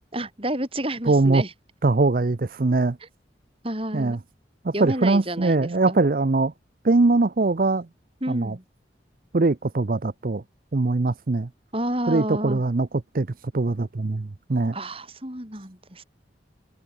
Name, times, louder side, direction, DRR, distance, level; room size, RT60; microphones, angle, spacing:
voice 1, 0.1-1.5 3.0-3.1 3.6-4.2 4.7-6.0 8.2-8.6 11.7-12.6 14.7-16.0, right 1 dB, 30° right, 7.7 m, -30 dB
voice 2, 1.1-1.4 1.8-3.0 3.9-4.2 4.6-6.5 6.8-7.9 8.3-8.5 9.3-10.4 10.7-11.5 12.1-12.9 13.1-14.7, right 3 dB, 50° right, 0.6 m, -22 dB
head